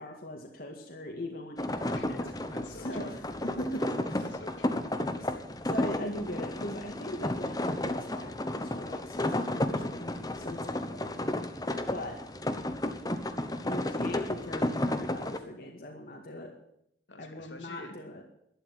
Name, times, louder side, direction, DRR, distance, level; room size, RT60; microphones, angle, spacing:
voice 1, 0.0-2.0 2.7-3.2 3.4-4.3 5.2-5.3 5.6-11.3 11.9-12.2 13.6-16.5 17.2-18.2, left 1 dB, 55° left, 1 dB, 2.1 m, -40 dB
sound 1, 1.6-15.4, left 1 dB, 20° left, 1.1 m, -33 dB
voice 2, 1.9-3.1 3.8-5.6 17.1-18.0, left 2 dB, 90° left, 6 dB, 2.6 m, -49 dB
12.0 x 12.0 x 7.8 m, 0.75 s
head